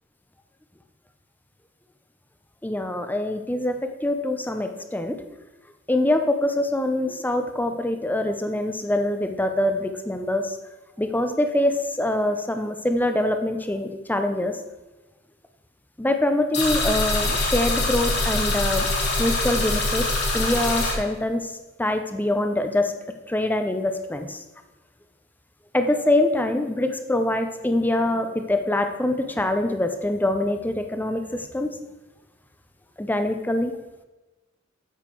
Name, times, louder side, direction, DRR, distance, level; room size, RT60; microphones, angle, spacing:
voice 1, 2.6-5.2 5.9-10.6 11.0-14.5 16.0-18.9 19.2-20.1 20.3-21.5 21.8-22.9 23.3-24.4 25.7-31.7 33.0-33.7, left 1 dB, 10° left, 7 dB, 0.7 m, -24 dB
sound 1, 16.5-20.9, left 2 dB, 55° left, 2.8 m, -24 dB
9.1 x 7.5 x 4.6 m, 1.1 s
head